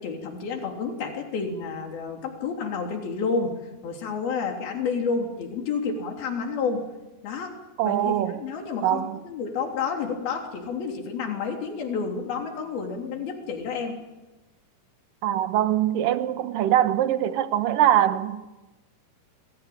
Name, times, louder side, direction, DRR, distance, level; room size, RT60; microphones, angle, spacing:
voice 1, 0.0-3.6 3.8-6.9 7.2-7.6 7.8-14.0, left 5 dB, 60° left, 5.1 m, -30 dB
voice 2, 7.8-8.4 8.8-9.2 15.2-18.5, right 11 dB, 70° right, 2.4 m, -23 dB
28.5 x 21.0 x 8.7 m
omnidirectional pair, 4.9 m